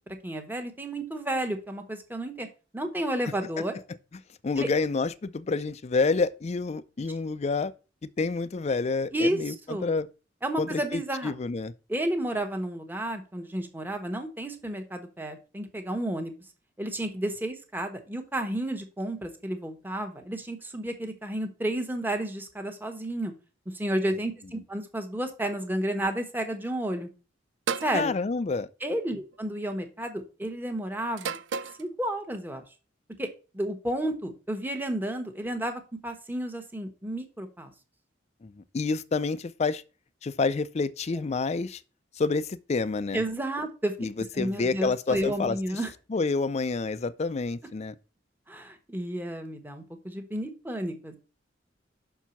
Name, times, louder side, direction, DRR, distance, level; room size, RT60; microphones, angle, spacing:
voice 1, 0.2-2.5 2.7-3.7 4.6-4.7 9.1-9.9 10.4-11.3 11.9-16.4 16.8-23.3 23.7-27.1 27.8-28.1 28.8-31.4 31.8-32.6 33.2-33.3 33.5-37.7 43.1-43.9 44.3-45.9 48.5-51.2, right 1 dB, 10° right, 1.1 m, -31 dB
voice 2, 4.4-7.7 8.2-10.1 10.6-11.7 27.9-28.7 38.4-39.8 40.2-41.8 42.2-43.2 44.0-45.6 46.1-47.9, left 4 dB, 35° left, 0.4 m, -28 dB
sound 1, 27.7-28.0 29.2-29.5 31.2-31.8, right 6 dB, 85° right, 0.5 m, -32 dB
6.0 x 4.6 x 5.6 m
head